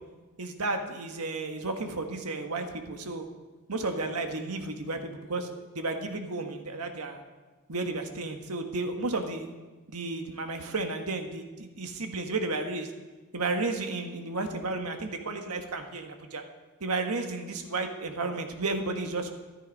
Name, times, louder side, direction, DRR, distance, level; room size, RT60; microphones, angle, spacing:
voice 1, 0.4-3.3 3.7-7.2 7.7-9.5 9.9-12.9 13.3-16.4 16.8-19.3, right 3 dB, 90° right, 5 dB, 1.5 m, -33 dB
13.5 x 12.0 x 5.3 m, 1.3 s
head